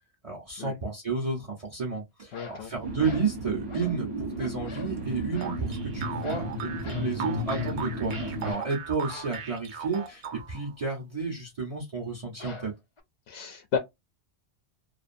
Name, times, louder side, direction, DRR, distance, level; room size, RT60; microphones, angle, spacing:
voice 1, 0.2-12.7, right 4 dB, 35° right, 0.8 m, -31 dB
voice 2, 2.3-2.7 13.3-13.8, left 6 dB, 70° left, 0.8 m, -32 dB
sound 1, 2.3-2.6 3.0-3.3 3.7-4.0 4.4-5.0 5.3-5.6 6.2-6.5 6.8-7.1 7.5-7.8 8.1-8.7 9.0-9.4 12.4-13.0, left 2 dB, 40° left, 0.5 m, -44 dB
sound 2, 2.8-8.5, equal, 65° right, 1.1 m, -34 dB
sound 3, 5.4-10.7, right 7 dB, 85° right, 1.0 m, -38 dB
2.5 x 2.4 x 2.5 m
omnidirectional pair, 1.1 m